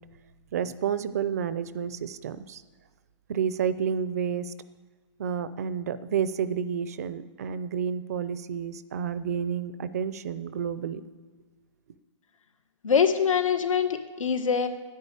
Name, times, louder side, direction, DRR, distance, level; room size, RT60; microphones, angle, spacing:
voice 1, 0.5-2.6 3.3-4.5 5.2-11.0, right 7 dB, 30° right, 14 dB, 0.5 m, -30 dB
voice 2, 12.8-14.7, left 7 dB, 90° left, 7 dB, 1.7 m, -24 dB
10.5 x 9.9 x 8.2 m, 1.5 s
hypercardioid pair, 170°, 16 cm